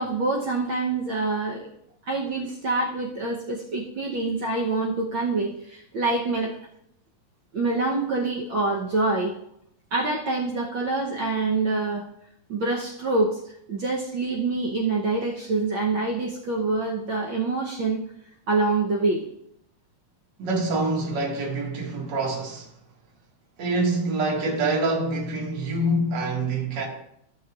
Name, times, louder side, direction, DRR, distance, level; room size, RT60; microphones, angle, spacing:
voice 1, 0.0-1.7 2.1-6.6 7.5-9.4 9.9-12.1 12.5-13.4 13.7-18.0 18.5-19.2, right 3 dB, 70° right, 1.2 m, -26 dB
voice 2, 20.4-22.7 23.6-26.9, right 2 dB, 40° right, 2.2 m, -26 dB
14.5 x 6.5 x 2.4 m
omnidirectional pair, 3.3 m